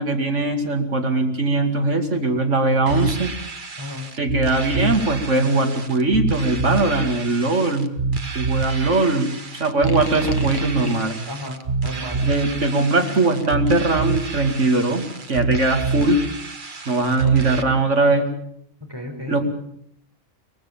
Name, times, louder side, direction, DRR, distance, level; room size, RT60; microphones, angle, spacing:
voice 1, 0.0-3.3 4.2-7.9 8.3-9.3 9.6-11.2 12.2-16.2 16.9-18.3 19.3-19.4, right 2 dB, 65° right, 4 dB, 2.8 m, -20 dB
sound 1, 2.9-17.6, right 4 dB, 40° right, 1.5 m, -27 dB
voice 2, 3.8-4.1 11.3-12.2 17.2-17.7 18.8-19.4, left 1 dB, 20° right, 2 dB, 4.9 m, -34 dB
sound 2, 9.7-11.2 13.0-13.5, left 1 dB, 15° left, 1.8 m, -33 dB
24.0 x 19.5 x 7.3 m, 0.68 s
omnidirectional pair, 1.4 m